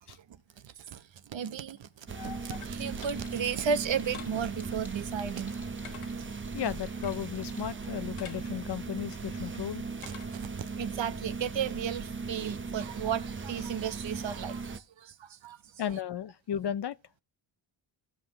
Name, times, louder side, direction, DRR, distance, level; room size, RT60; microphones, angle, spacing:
voice 1, 0.3-5.6 6.2-6.3 10.0-10.5 10.8-15.6, right 7 dB, 60° right, 1.0 m, -34 dB
sound 1, 1.8-10.6, left 8 dB, 90° left, 1.4 m, -53 dB
voice 2, 2.1-2.6 6.5-9.8 15.8-17.0, left 9 dB, 55° left, 0.7 m, -35 dB
sound 2, 2.1-14.8, right 4 dB, 25° right, 0.7 m, -38 dB
sound 3, 2.6-7.7, equal, 5° right, 2.0 m, -57 dB
16.5 x 5.6 x 3.1 m
cardioid pair, 80°, 50 cm